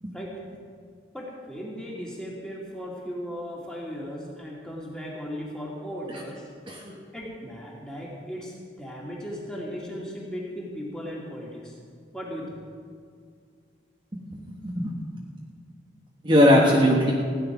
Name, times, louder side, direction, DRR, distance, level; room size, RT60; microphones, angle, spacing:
voice 1, 1.1-6.5 7.1-11.8 12.1-12.6, equal, 5° left, -4 dB, 2.5 m, -37 dB
voice 2, 6.7-7.0 14.1-14.4 14.6-14.9 16.2-17.1, left 1 dB, 25° right, -3 dB, 1.4 m, -20 dB
16.0 x 10.5 x 6.1 m, 2.1 s
head